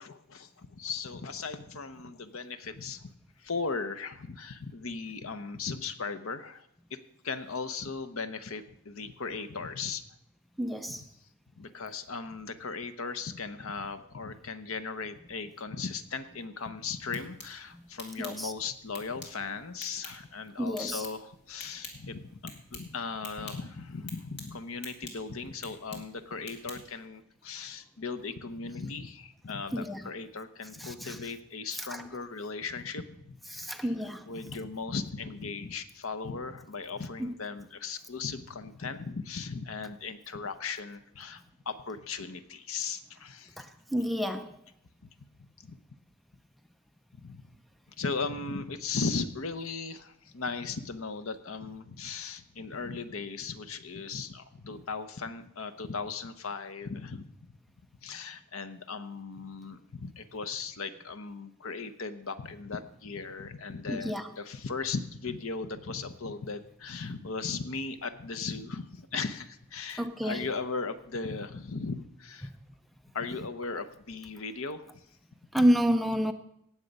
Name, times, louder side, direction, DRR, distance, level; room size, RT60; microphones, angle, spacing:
voice 1, 0.0-3.1 3.4-7.0 7.2-10.0 10.9-11.1 11.6-34.0 34.3-43.6 45.0-45.1 45.4-45.8 47.1-47.4 48.0-57.3 58.0-72.5 73.1-75.0 75.6-75.7, left 4 dB, 65° left, 0.8 m, -37 dB
voice 2, 10.6-11.0 18.2-18.5 20.6-21.0 29.7-30.0 30.8-31.1 33.5-34.3 37.2-37.3 43.6-43.7 43.9-44.5 63.9-64.2 70.0-70.4 75.5-76.3, equal, ahead, 0.5 m, -28 dB
sound 1, 16.9-27.1, left 3 dB, 50° left, 2.5 m, -49 dB
18.0 x 7.5 x 5.4 m
head